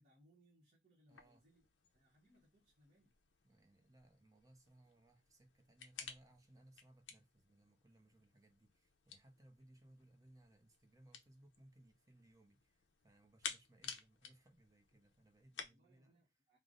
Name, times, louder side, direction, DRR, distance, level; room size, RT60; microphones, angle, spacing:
voice 1, 0.0-1.6 1.9-3.1 15.7-16.6, equal, 40° right, 1.2 m, -71 dB
sound 1, 1.1-15.7, left 7 dB, 85° left, 0.6 m, -55 dB
voice 2, 1.1-1.5 3.4-16.2, right 1 dB, 20° right, 0.6 m, -66 dB
3.3 x 2.1 x 3.7 m
head